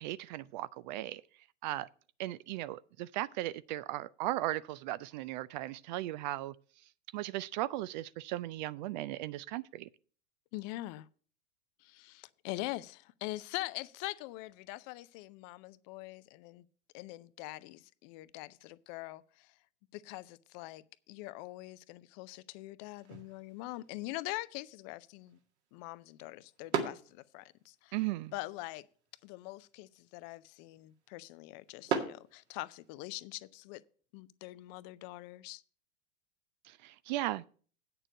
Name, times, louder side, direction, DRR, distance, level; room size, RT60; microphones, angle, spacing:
voice 1, 0.0-1.9 2.2-6.6 6.8-9.9 27.9-28.3 36.6-37.4, right 15 dB, 40° right, 0.4 m, -37 dB
voice 2, 10.5-11.1 11.8-16.6 16.9-19.5 19.9-25.4 25.7-27.9 28.3-28.9 29.2-33.8 34.1-35.6, left 19 dB, 40° left, 0.5 m, -43 dB
sound 1, 23.0-33.0, right 6 dB, 65° right, 2.1 m, -43 dB
8.8 x 6.8 x 6.3 m
hypercardioid pair, 95°, 36 cm